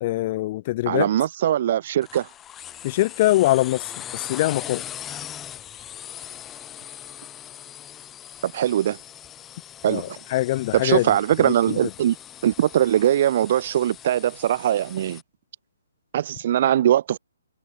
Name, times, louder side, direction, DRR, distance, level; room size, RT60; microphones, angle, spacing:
voice 1, 0.0-1.1 2.8-4.8 9.9-11.1 11.4-11.8, left 17 dB, 30° left, 1.2 m, -23 dB
voice 2, 0.9-2.3 8.4-9.0 9.8-10.2 10.7-12.2 12.4-15.2 16.1-17.2, right 11 dB, 40° right, 7.0 m, -21 dB
sound 1, 2.0-15.2, left 10 dB, 15° left, 4.9 m, -40 dB
hypercardioid pair, 155°, 0 cm